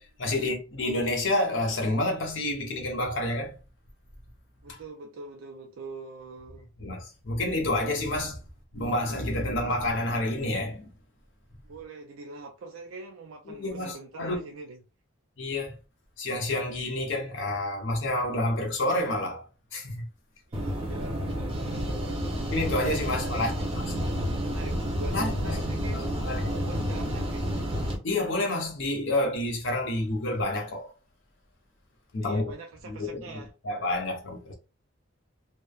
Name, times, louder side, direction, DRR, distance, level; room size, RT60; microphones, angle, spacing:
voice 1, 0.0-3.6 4.7-4.8 6.8-8.4 8.7-10.9 13.5-14.4 15.4-15.7 16.2-19.4 19.7-20.1 22.5-23.5 25.1-26.6 28.0-30.9 32.1-32.4 32.9-33.2 33.6-34.5, left 1 dB, 65° left, 0.8 m, -29 dB
voice 2, 4.6-6.7 11.6-14.8 20.5-22.3 23.3-27.7 32.2-33.5, right 3 dB, 75° right, 0.4 m, -44 dB
sound 1, 20.5-28.0, equal, 25° right, 0.5 m, -30 dB
3.1 x 2.1 x 2.3 m
head